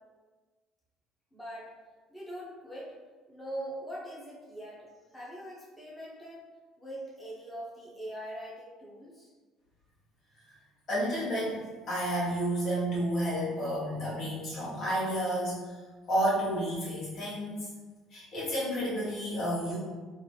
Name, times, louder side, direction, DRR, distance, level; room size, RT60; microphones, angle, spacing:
voice 1, 1.3-1.7 2.1-2.9 3.3-6.4 6.8-9.3, right 1 dB, 10° left, -7 dB, 1.0 m, -42 dB
voice 2, 10.9-15.8 16.1-17.7 18.1-19.8, equal, 55° left, -8 dB, 1.4 m, -31 dB
3.3 x 2.0 x 3.1 m, 1.3 s
hypercardioid pair, 60°, 0 cm